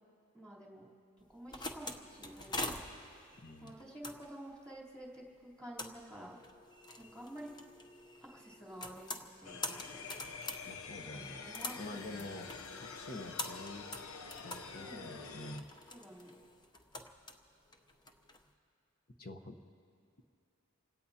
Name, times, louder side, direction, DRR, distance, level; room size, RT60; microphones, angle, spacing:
voice 1, 0.3-0.9 1.3-2.8 3.6-6.4 7.0-7.5 8.2-10.2 11.1-11.7 12.1-12.3 12.7-12.8 14.7-15.2 15.9-16.3, right 1 dB, 5° left, -6 dB, 3.5 m, -50 dB
sound 1, 1.2-18.4, left 2 dB, 20° left, 0.8 m, -46 dB
voice 2, 3.4-3.7 10.7-11.4 11.8-12.5 12.8-13.9 14.4-15.7 19.2-19.6, left 2 dB, 45° left, 6 dB, 1.0 m, -47 dB
sound 2, 9.4-15.6, left 5 dB, 80° left, 0.9 m, -47 dB
29.0 x 17.0 x 2.9 m, 2.4 s
head